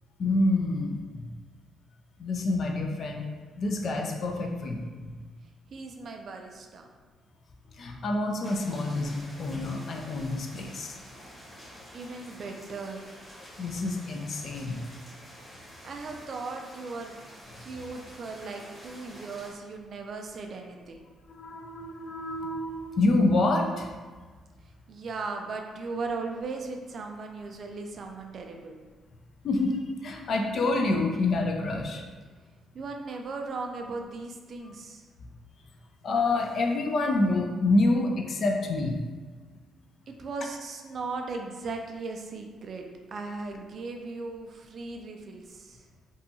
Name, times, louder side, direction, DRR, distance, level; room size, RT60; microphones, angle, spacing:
voice 1, 0.2-1.3 2.2-3.3 3.6-5.1 7.7-11.0 13.6-14.8 21.3-23.9 29.4-32.0 36.0-39.0, left 2 dB, 55° left, 2 dB, 0.4 m, -27 dB
voice 2, 5.7-6.9 11.9-13.0 15.5-17.2 17.6-21.1 24.9-28.8 32.7-35.1 39.7-45.8, right 3 dB, 55° right, 3 dB, 0.3 m, -37 dB
sound 1, 8.4-19.5, equal, 5° left, 1.0 m, -48 dB
2.7 x 2.3 x 2.6 m, 1.4 s
cardioid pair, 90°, 0 cm